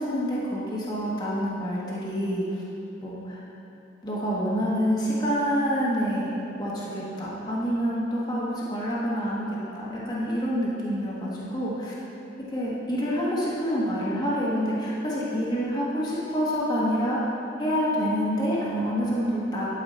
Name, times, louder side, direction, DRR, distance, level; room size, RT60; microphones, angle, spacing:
voice 1, 0.0-2.6 3.0-3.4 4.0-6.3 6.6-11.9 12.5-17.2 17.6-19.7, equal, 20° left, -7 dB, 1.3 m, -27 dB
11.5 x 4.9 x 4.2 m, 2.9 s
head